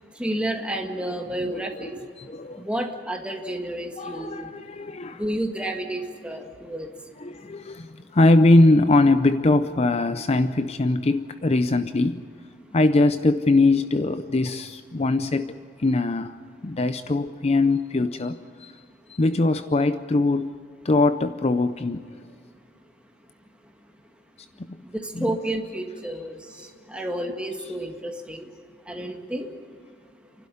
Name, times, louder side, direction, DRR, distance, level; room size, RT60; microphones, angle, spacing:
voice 1, 0.1-4.6 5.1-7.1 12.7-12.8 23.6-23.7 24.8-28.5 28.9-29.5, right 1 dB, 5° right, 3 dB, 1.9 m, -31 dB
voice 2, 1.4-1.9 2.2-2.6 4.0-5.2 7.2-12.2 12.7-16.4 16.6-18.8 19.1-20.5 20.8-22.0 24.6-24.7 25.1-25.4, left 2 dB, 35° left, 11 dB, 0.6 m, -21 dB
29.0 x 12.0 x 10.0 m, 2.3 s
head